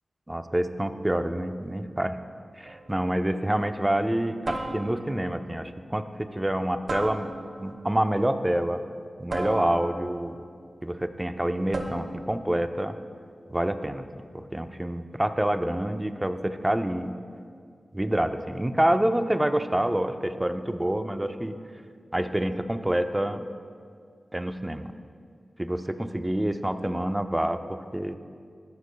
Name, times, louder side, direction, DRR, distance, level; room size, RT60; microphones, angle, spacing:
voice 1, 0.3-2.2 2.6-7.3 7.6-8.8 9.2-10.4 10.8-13.0 13.5-14.1 14.3-17.2 17.9-21.6 22.1-23.4 24.3-24.9 25.6-28.2, right 1 dB, 20° right, 8 dB, 0.6 m, -27 dB
sound 1, 2.7-3.0 4.5-5.2 6.9-7.7 9.3-10.2 11.7-12.3, right 2 dB, 70° right, 1.0 m, -35 dB
15.0 x 11.5 x 2.3 m, 2.2 s
cardioid pair, 40°, 0 cm